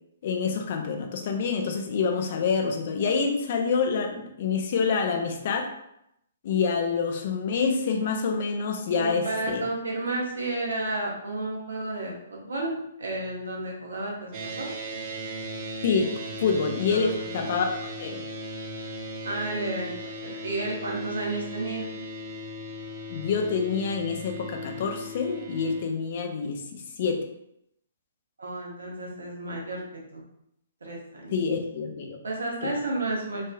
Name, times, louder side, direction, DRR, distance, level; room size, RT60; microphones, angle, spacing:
voice 1, 0.2-5.7 6.4-9.6 15.8-17.6 18.0-18.2 23.1-27.2 31.3-32.2 32.6-32.7, left 5 dB, 45° left, 3 dB, 0.4 m, -27 dB
voice 2, 8.9-14.7 16.9-17.7 19.2-19.9 20.2-21.9 28.4-29.8 30.1-30.2 30.8-31.4 32.2-33.4, right 2 dB, 65° right, -2 dB, 0.8 m, -32 dB
sound 1, 14.3-25.9, equal, 35° right, 0.4 m, -37 dB
3.2 x 2.6 x 2.2 m, 0.79 s
figure-of-eight pair, 120°, 0 cm